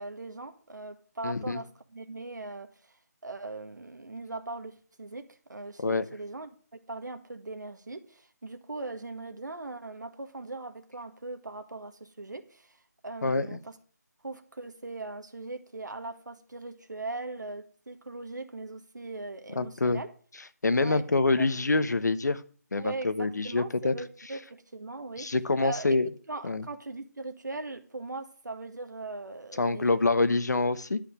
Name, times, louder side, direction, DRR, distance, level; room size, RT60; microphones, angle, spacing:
voice 1, 0.0-3.0 3.2-6.5 6.9-13.8 14.2-20.1 20.8-21.5 22.7-25.3 25.6-26.0 26.3-30.0, right 2 dB, 90° right, 1.8 m, -40 dB
voice 2, 1.2-1.6 5.8-6.1 13.2-13.5 19.6-20.0 20.6-22.4 22.7-23.9 25.2-26.1 26.4-26.6 29.6-31.0, left 3 dB, 70° left, 1.1 m, -26 dB
11.5 x 5.7 x 8.0 m
figure-of-eight pair, 170°, 10 cm